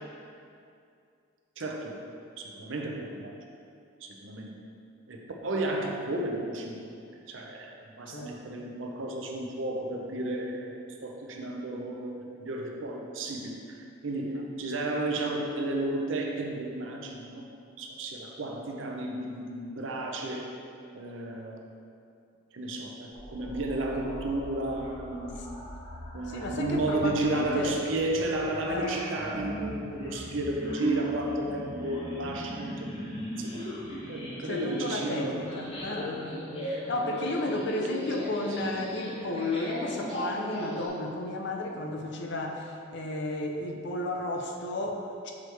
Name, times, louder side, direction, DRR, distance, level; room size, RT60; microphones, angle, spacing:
voice 1, 1.6-2.0 2.4-3.3 4.0-4.6 5.1-6.9 7.3-7.7 8.0-17.5 17.8-20.6 20.9-21.6 22.5-25.4 26.1-32.9 33.4-33.7 34.1-35.5 38.4-38.6, right 2 dB, 75° right, 1 dB, 0.6 m, -33 dB
sound 1, 23.1-40.9, equal, 30° left, 1.1 m, -38 dB
voice 2, 26.3-27.8 28.6-29.0 34.4-45.3, left 2 dB, 60° left, 2 dB, 0.6 m, -33 dB
6.2 x 4.8 x 3.3 m, 2.5 s
head